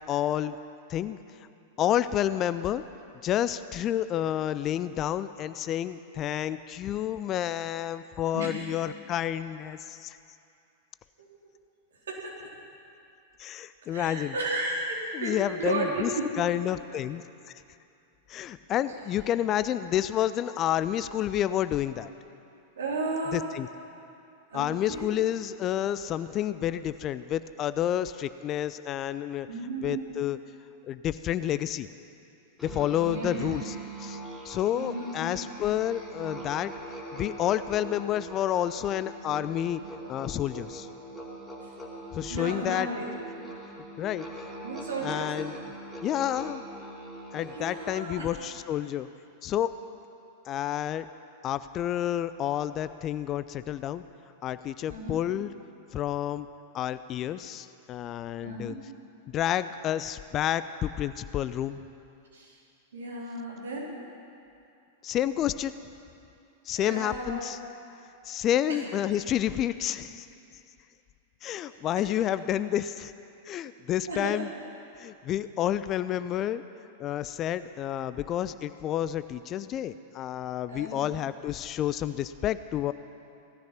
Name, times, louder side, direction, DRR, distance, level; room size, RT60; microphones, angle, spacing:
voice 1, 0.1-0.6 0.9-1.2 1.8-2.8 3.2-10.2 13.4-14.3 15.1-16.1 16.4-17.2 18.3-22.1 23.3-23.7 24.5-29.5 29.8-30.4 30.8-31.9 32.6-34.2 34.4-36.7 37.1-39.8 40.1-40.9 42.1-42.9 44.0-44.3 45.0-45.5 46.0-46.7 47.3-49.1 49.4-49.7 50.4-51.1 51.4-54.0 54.4-55.5 55.9-56.5 56.7-58.7 59.3-61.8 65.0-65.7 66.7-67.6 68.2-70.3 71.4-73.1 73.4-74.5 75.0-76.6 77.0-82.9, left 11 dB, 30° left, 14 dB, 0.5 m, -29 dB
voice 2, 8.3-8.7 11.2-11.3 12.1-12.5 13.9-16.3 22.8-23.4 24.5-25.1 29.5-30.0 33.0-33.5 34.7-35.3 41.6-41.7 42.3-43.1 44.6-45.3 47.5-48.3 54.9-55.1 58.4-58.8 62.3-62.6 62.9-63.9 66.8-67.5 68.7-68.8 74.1-74.4 80.7-81.0, right 2 dB, 70° right, -3 dB, 3.8 m, -34 dB
Musical instrument, 32.6-48.1, right 2 dB, ahead, 3.3 m, -42 dB
18.0 x 13.5 x 5.8 m, 2.6 s
figure-of-eight pair, 95°, 0 cm